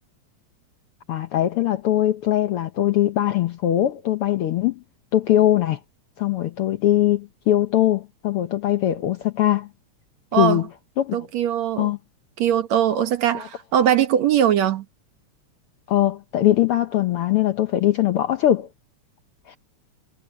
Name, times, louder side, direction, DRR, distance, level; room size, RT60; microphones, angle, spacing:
voice 1, 1.1-4.8 5.1-5.8 6.2-9.7 10.3-10.7 11.0-11.3 11.8-12.0 13.3-13.5 15.9-18.7 19.5-19.6, left 13 dB, 70° left, 1.4 m, -21 dB
voice 2, 11.1-11.9 12.4-14.8, right 10 dB, 70° right, 2.5 m, -21 dB
omnidirectional pair, 3.4 m